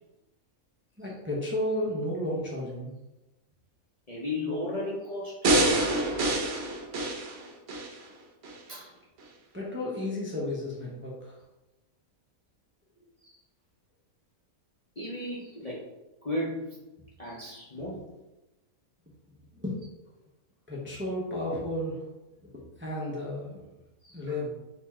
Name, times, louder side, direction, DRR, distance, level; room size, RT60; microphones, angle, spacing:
voice 1, 1.0-2.9 9.5-11.4 19.5-19.8 20.7-22.1 22.8-23.6 24.1-24.5, left 1 dB, 10° right, -4 dB, 0.7 m, -32 dB
voice 2, 4.1-5.4 7.2-7.3 8.7-8.9 13.2-13.4 15.0-15.9 16.2-16.8 17.2-18.0 24.0-24.2, left 1 dB, 35° left, -6 dB, 0.7 m, -34 dB
sound 1, 5.4-7.9 8.4-8.5, right 1 dB, 55° right, 1.0 m, -26 dB
4.2 x 2.9 x 4.3 m, 0.99 s
omnidirectional pair, 1.5 m